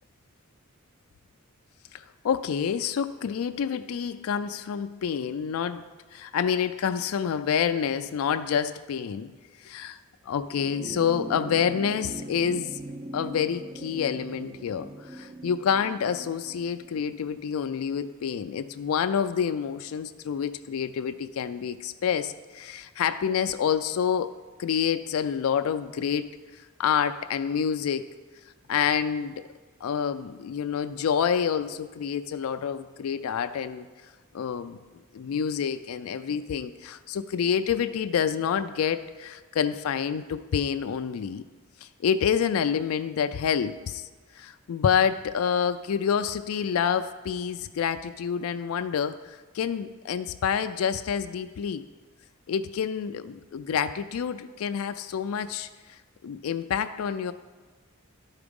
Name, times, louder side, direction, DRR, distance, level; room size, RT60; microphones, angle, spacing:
voice 1, 1.9-5.8 6.1-9.3 9.6-10.0 10.3-12.7 13.1-24.3 24.6-28.1 28.7-29.4 29.8-33.9 34.3-34.8 35.1-41.4 41.8-44.1 44.3-51.8 52.5-57.3, left 7 dB, 85° left, 10 dB, 0.4 m, -28 dB
sound 1, 10.5-19.2 20.4-20.5, right 1 dB, 20° right, 0.4 m, -42 dB
11.5 x 4.9 x 5.2 m, 1.4 s
head